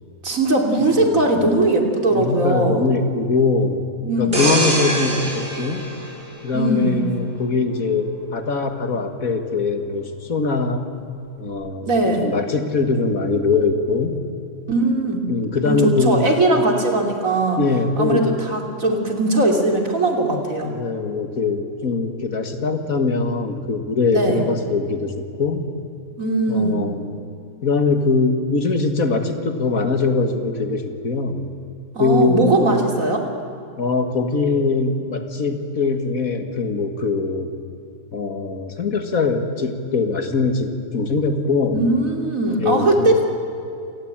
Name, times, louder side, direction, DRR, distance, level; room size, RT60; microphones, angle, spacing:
voice 1, 0.2-2.9 4.0-4.4 6.5-7.1 11.8-12.3 14.7-15.3 15.6-17.6 18.0-20.7 24.1-24.4 26.2-26.8 32.0-33.2 41.7-43.2, right 2 dB, 60° right, 3 dB, 3.4 m, -19 dB
voice 2, 1.0-1.3 2.1-3.8 4.2-5.8 6.4-10.9 11.4-14.2 15.3-16.3 17.6-18.3 20.6-25.7 26.5-27.0 27.6-31.5 32.0-32.5 33.8-37.5 38.1-41.8 42.6-43.1, left 4 dB, 65° left, 7 dB, 2.2 m, -22 dB
sound 1, 4.3-7.0 7.5-7.7, right 1 dB, 40° right, 6.0 m, -24 dB
27.5 x 19.0 x 8.9 m, 2.6 s
omnidirectional pair, 1.6 m